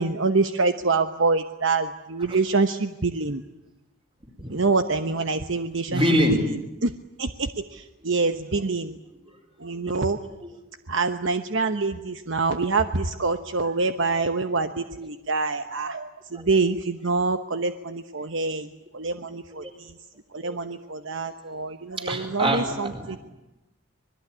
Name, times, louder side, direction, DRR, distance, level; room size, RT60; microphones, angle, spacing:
voice 1, 0.0-3.4 4.5-6.0 6.4-6.5 6.8-6.9 7.2-9.0 9.6-10.2 10.9-18.7 18.9-19.9 20.3-23.2, right 3 dB, 60° right, 8 dB, 1.0 m, -26 dB
voice 2, 5.9-6.4 10.2-10.5 16.3-16.5 19.5-19.7 20.4-20.6 22.0-23.2, equal, 25° right, 4 dB, 4.7 m, -25 dB
26.0 x 21.0 x 9.8 m, 0.97 s
head